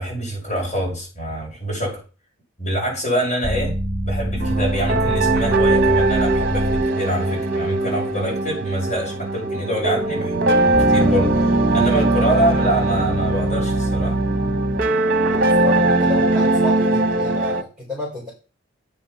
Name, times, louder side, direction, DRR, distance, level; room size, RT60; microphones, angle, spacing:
voice 1, 0.0-2.0 2.6-3.8 4.0-14.2, right 1 dB, 35° left, 5.8 m, -25 dB
sound 1, 3.4-6.8 10.7-14.8, right 1 dB, 15° left, 4.9 m, -24 dB
sound 2, 4.4-17.6, right 2 dB, 45° right, 1.0 m, -20 dB
voice 2, 15.3-18.3, left 1 dB, ahead, 4.7 m, -31 dB
8.8 x 6.7 x 5.7 m
head